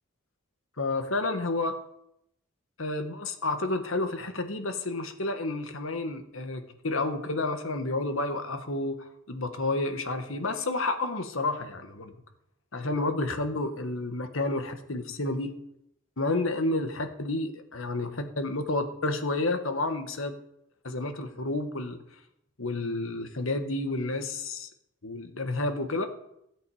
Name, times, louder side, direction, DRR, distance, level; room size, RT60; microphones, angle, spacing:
voice 1, 0.8-1.7 2.8-9.0 9.3-12.1 12.7-15.5 16.2-20.4 20.8-22.0 22.6-24.7 25.0-26.1, left 2 dB, 85° left, 8 dB, 1.5 m, -30 dB
16.5 x 8.4 x 4.9 m, 0.78 s
head